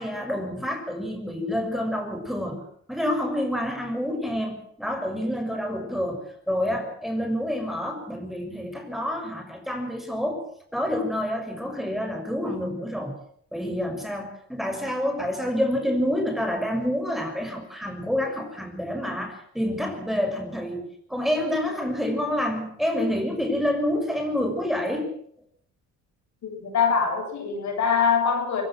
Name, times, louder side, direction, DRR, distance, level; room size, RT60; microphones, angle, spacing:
voice 1, 0.0-2.6 2.9-10.4 10.7-13.1 13.5-25.1, left 1 dB, ahead, 4 dB, 6.5 m, -28 dB
voice 2, 26.4-28.6, left 6 dB, 65° left, 4 dB, 7.8 m, -23 dB
24.0 x 16.5 x 7.8 m, 0.64 s
cardioid pair, 90°, 30 cm